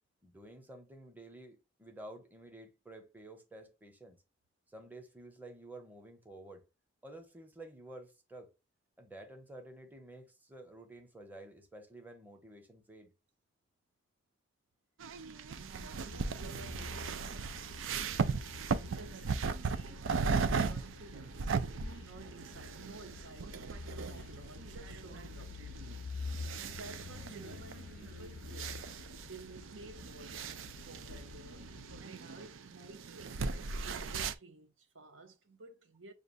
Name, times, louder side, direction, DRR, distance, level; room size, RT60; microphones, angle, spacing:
voice 1, 0.2-4.2 4.7-6.6 7.0-8.5 9.0-13.1, right 1 dB, 10° right, 0.9 m, -51 dB
sound 1, 15.0-34.3, right 5 dB, 90° right, 0.5 m, -38 dB
voice 2, 16.0-17.7 18.9-25.6 26.6-36.1, right 2 dB, 70° right, 0.9 m, -53 dB
sound 2, 16.1-32.0, left 4 dB, 60° left, 0.4 m, -48 dB
6.7 x 2.5 x 2.5 m
head